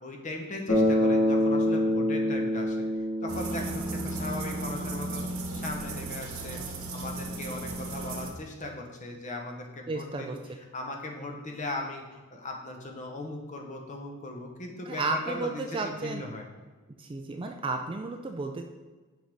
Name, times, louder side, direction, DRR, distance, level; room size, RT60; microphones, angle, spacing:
voice 1, 0.0-2.9 3.2-6.6 6.9-10.3 10.7-12.0 12.3-16.4, left 2 dB, 35° left, 2 dB, 0.8 m, -38 dB
Bass guitar, 0.7-4.7, left 1 dB, 70° left, 2.0 m, -26 dB
sound 1, 3.3-8.3, right 2 dB, 75° right, 1.0 m, -35 dB
voice 2, 9.9-10.4 14.9-16.2 17.0-18.6, right 3 dB, 25° right, 4 dB, 0.3 m, -32 dB
6.2 x 5.3 x 3.4 m, 1.3 s
head